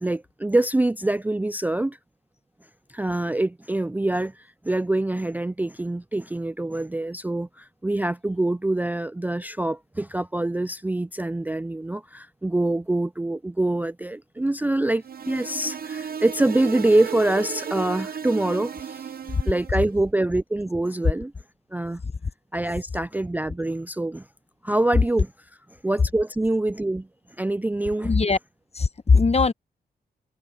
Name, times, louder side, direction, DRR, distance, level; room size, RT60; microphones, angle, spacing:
voice 1, 0.0-2.0 2.9-19.1 19.4-21.3 21.7-22.0 22.5-24.3 24.6-25.3 25.8-27.1 27.4-28.1, right 2 dB, 10° right, 0.4 m, -25 dB
sound 1, 15.0-19.8, right 7 dB, 60° right, 0.7 m, -34 dB
voice 2, 28.0-28.4 28.7-29.5, left 4 dB, 40° left, 1.1 m, -19 dB
cardioid pair, 55°, 17 cm